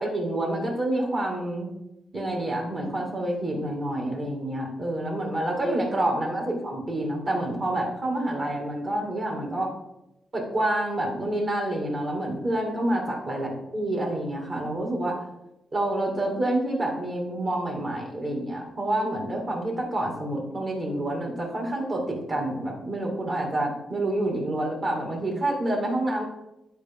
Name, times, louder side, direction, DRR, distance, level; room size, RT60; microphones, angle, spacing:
voice 1, 0.0-1.7 2.1-9.7 10.3-15.2 15.7-26.2, right 1 dB, 35° right, 0 dB, 2.3 m, -28 dB
11.5 x 4.7 x 3.7 m, 0.90 s
wide cardioid pair, 135°, 0 cm